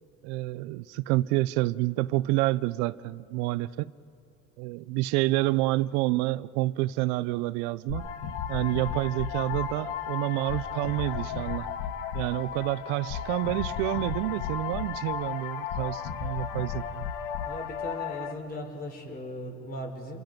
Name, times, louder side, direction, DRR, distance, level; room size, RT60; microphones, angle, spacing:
voice 1, 0.2-3.9 4.6-8.1 8.5-11.7 12.1-17.1, right 18 dB, 85° right, 0.6 m, -28 dB
sound 1, 7.9-18.3, left 8 dB, 80° left, 1.7 m, -34 dB
voice 2, 17.5-20.2, left 1 dB, 30° left, 4.0 m, -38 dB
29.0 x 27.5 x 5.3 m
cardioid pair, 150°, 33 cm